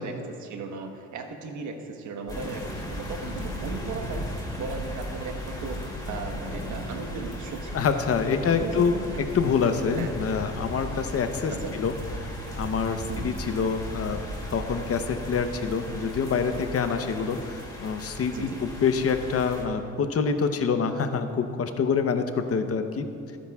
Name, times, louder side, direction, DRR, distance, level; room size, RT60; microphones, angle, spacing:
voice 1, 0.0-7.9 8.5-9.2 9.9-10.1 11.5-11.8 13.1-13.3 18.3-18.6, right 4 dB, 75° right, 4 dB, 1.3 m, -37 dB
sound 1, 2.3-19.6, equal, 15° left, 2.4 m, -36 dB
voice 2, 7.7-8.9 9.3-11.9 12.2-12.3 12.6-14.2 14.5-23.0, left 5 dB, 50° left, 7 dB, 0.9 m, -26 dB
20.5 x 10.0 x 2.4 m, 2.6 s
cardioid pair, 90°, 30 cm